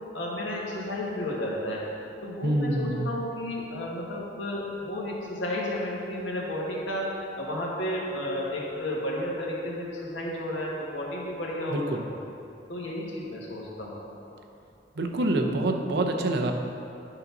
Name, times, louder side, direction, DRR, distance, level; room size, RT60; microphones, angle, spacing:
voice 1, 0.1-1.8 2.2-11.8 12.7-14.0, left 1 dB, 85° left, -4 dB, 1.7 m, -32 dB
voice 2, 2.4-3.1 11.7-12.0 15.0-16.5, right 1 dB, 65° right, 3 dB, 0.7 m, -26 dB
9.7 x 4.0 x 5.8 m, 2.8 s
head